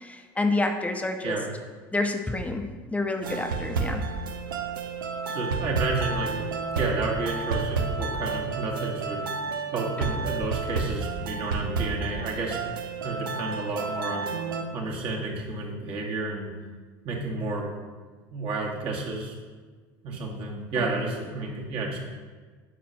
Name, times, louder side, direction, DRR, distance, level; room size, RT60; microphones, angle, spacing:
voice 1, 0.0-1.4 1.9-4.0 20.8-20.9, left 2 dB, 10° left, 5 dB, 0.7 m, -28 dB
sound 1, 3.2-14.6, right 4 dB, 90° right, 0.6 m, -31 dB
voice 2, 5.3-6.4 6.7-9.2 9.7-12.6 13.0-14.3 14.7-16.5 17.0-17.7 18.3-19.3 20.0-22.0, right 3 dB, 55° right, -2 dB, 1.8 m, -31 dB
8.5 x 5.0 x 2.9 m, 1.5 s
hypercardioid pair, 85°, 11 cm